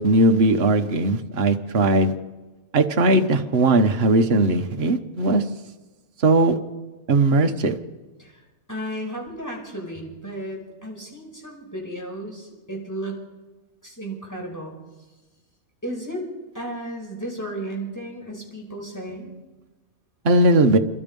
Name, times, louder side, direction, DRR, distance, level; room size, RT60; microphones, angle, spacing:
voice 1, 0.0-2.1 2.7-5.4 6.2-6.6 7.1-7.8 20.2-20.8, right 2 dB, 50° right, 5 dB, 1.3 m, -18 dB
voice 2, 8.7-13.2 13.8-14.7 15.8-16.2 16.5-19.3, right 1 dB, 10° left, 0 dB, 5.2 m, -34 dB
27.0 x 22.5 x 5.4 m, 1.2 s
omnidirectional pair, 1.4 m